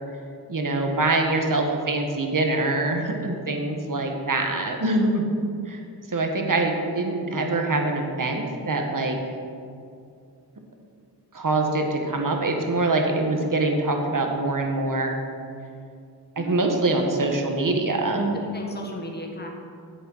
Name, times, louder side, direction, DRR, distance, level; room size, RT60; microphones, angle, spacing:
voice 1, 0.5-5.2 5.7-5.8 6.1-9.2 11.3-15.2 16.4-18.4, right 2 dB, 50° right, 2 dB, 1.6 m, -24 dB
voice 2, 18.3-19.5, left 1 dB, 25° left, 1 dB, 1.5 m, -36 dB
10.5 x 7.9 x 5.6 m, 2.4 s
wide cardioid pair, 70°, 42 cm